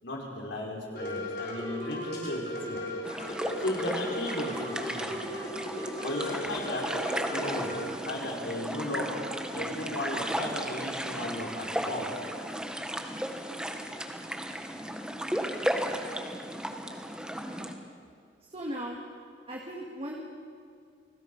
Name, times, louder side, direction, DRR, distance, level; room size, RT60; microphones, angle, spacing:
voice 1, 0.0-2.8 3.3-5.2 6.0-6.9 7.2-7.7 8.0-9.1 9.5-12.1, left 1 dB, 90° left, -1 dB, 4.8 m, -35 dB
sound 1, 0.9-7.9, left 1 dB, 60° left, 5.3 m, -36 dB
sound 2, 3.0-17.7, equal, 5° right, 1.4 m, -35 dB
voice 2, 18.5-19.0 19.5-20.2, right 1 dB, 30° right, -2 dB, 2.2 m, -37 dB
29.0 x 19.5 x 5.5 m, 2.3 s
head